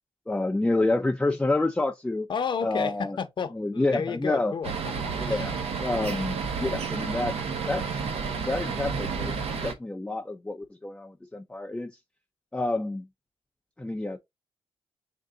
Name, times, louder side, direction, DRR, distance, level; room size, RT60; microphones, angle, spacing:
voice 1, 0.3-2.3 2.6-3.2 3.6-4.5 5.2-7.3 7.7-7.8 8.5-11.9 12.5-13.0 13.8-14.2, left 2 dB, 10° left, 0.4 m, -28 dB
voice 2, 2.3-5.6, left 6 dB, 50° left, 0.7 m, -32 dB
sound 1, 4.6-9.7, right 5 dB, 75° right, 0.9 m, -31 dB
3.8 x 2.6 x 3.6 m
cardioid pair, 100°, 10 cm